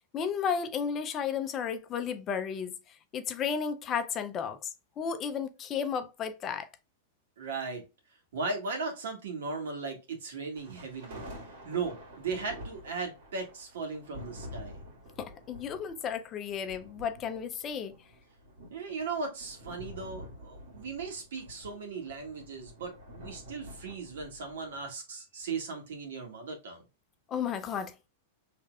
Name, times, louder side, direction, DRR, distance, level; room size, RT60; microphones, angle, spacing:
voice 1, 0.1-2.7 3.1-4.7 5.0-6.7 15.2-18.0 27.3-28.1, left 7 dB, 25° left, 0.5 m, -33 dB
voice 2, 7.4-7.8 8.3-11.3 11.6-14.9 18.7-26.8, right 4 dB, 85° right, 1.7 m, -37 dB
sound 1, 10.5-24.8, equal, 65° right, 1.9 m, -48 dB
5.1 x 3.2 x 2.3 m
supercardioid pair, 155°, 0 cm